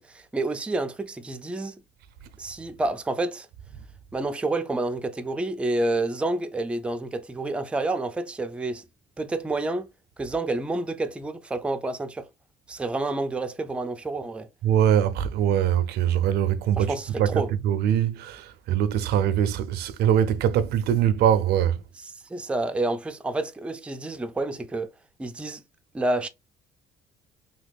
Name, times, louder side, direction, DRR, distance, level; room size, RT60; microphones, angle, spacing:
voice 1, 0.0-1.8 2.4-3.5 4.1-8.8 9.2-9.9 10.2-12.3 12.7-14.5 16.8-17.5 22.3-24.9 25.2-25.6 25.9-26.3, right 2 dB, 5° right, 0.3 m, -29 dB
voice 2, 14.6-21.8, right 10 dB, 75° right, 0.5 m, -23 dB
3.0 x 2.3 x 3.4 m
cardioid pair, 110°, 17 cm